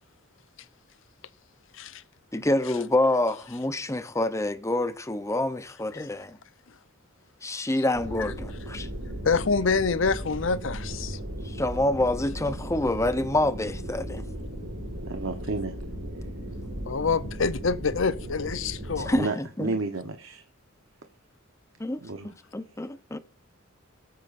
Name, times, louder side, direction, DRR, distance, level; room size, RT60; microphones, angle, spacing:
voice 1, 2.3-6.4 7.4-8.9 11.4-14.2 19.0-19.8 21.8-23.2, left 1 dB, 15° left, 0.7 m, -27 dB
sound 1, 7.9-19.2, equal, 85° right, 6.0 m, -36 dB
voice 2, 9.2-11.2 16.9-19.1, left 4 dB, 65° left, 0.7 m, -26 dB
voice 3, 15.0-15.8 19.1-19.3 19.6-20.4 22.0-22.3, right 3 dB, 70° right, 1.1 m, -31 dB
19.0 x 8.8 x 2.6 m
head